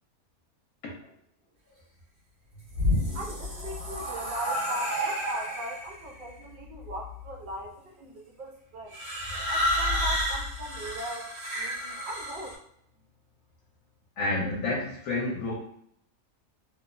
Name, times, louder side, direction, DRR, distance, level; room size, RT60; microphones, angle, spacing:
sound 1, 2.5-6.0 6.9-7.3 8.9-12.5, equal, 70° right, 1.4 m, -30 dB
voice 1, 3.1-9.0 9.5-12.6, right 1 dB, 85° right, -1 dB, 0.4 m, -39 dB
voice 2, 14.2-15.5, left 2 dB, 75° left, -3 dB, 1.0 m, -29 dB
2.9 x 2.0 x 2.3 m, 0.73 s
omnidirectional pair, 1.5 m